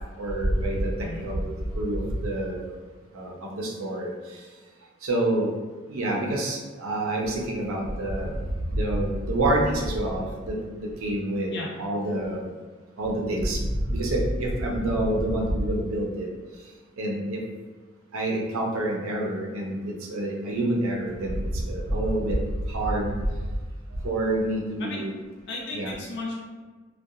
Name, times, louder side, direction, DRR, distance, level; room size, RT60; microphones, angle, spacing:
voice 1, 0.2-0.9 1.2-2.7 3.1-4.1 5.0-5.5 5.9-8.3 8.7-12.4 13.0-16.3 17.0-17.4 18.1-21.4 21.6-22.4 22.7-23.1 24.0-25.1 25.7-25.9, right 1 dB, 80° right, -1 dB, 0.5 m, -27 dB
voice 2, 25.5-26.4, left 2 dB, 55° left, -3 dB, 0.4 m, -34 dB
2.7 x 2.2 x 2.3 m, 1.4 s
head